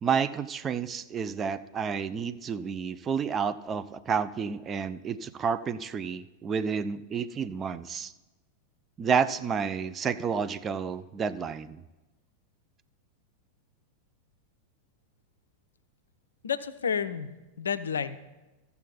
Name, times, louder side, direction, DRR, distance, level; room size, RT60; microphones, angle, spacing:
voice 1, 0.0-8.1 9.0-11.8, right 6 dB, 25° right, 12 dB, 0.4 m, -30 dB
voice 2, 16.4-18.2, left 7 dB, 70° left, 12 dB, 0.5 m, -31 dB
14.0 x 6.9 x 4.1 m, 1.1 s
figure-of-eight pair, 90°, 0 cm